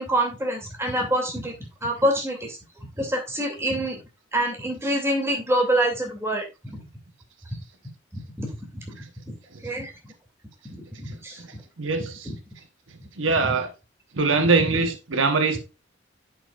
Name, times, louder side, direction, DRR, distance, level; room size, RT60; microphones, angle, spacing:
voice 1, 0.0-1.5 1.8-2.6 3.0-4.0 4.3-6.8 7.5-7.6 8.1-8.5 8.8-9.0 9.6-9.9 11.0-11.4 12.0-12.1, right 1 dB, 15° right, 2.6 m, -26 dB
voice 2, 11.1-12.3 13.2-13.7 14.1-15.6, right 4 dB, 90° right, 1.1 m, -23 dB
10.0 x 5.9 x 2.5 m
head